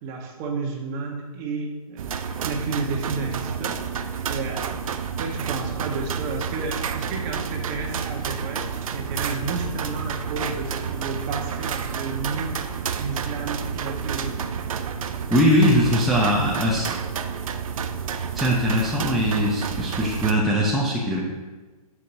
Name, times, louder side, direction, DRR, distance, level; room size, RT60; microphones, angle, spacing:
voice 1, 0.0-4.7 5.2-12.6 13.0-14.5, right 4 dB, 30° right, 1 dB, 1.2 m, -32 dB
sound 1, 2.0-20.3, right 6 dB, 60° right, 0.6 m, -30 dB
voice 2, 15.3-16.9 18.3-21.2, equal, ahead, -6 dB, 0.7 m, -21 dB
12.0 x 4.9 x 2.7 m, 1.3 s
hypercardioid pair, 130°, 20 cm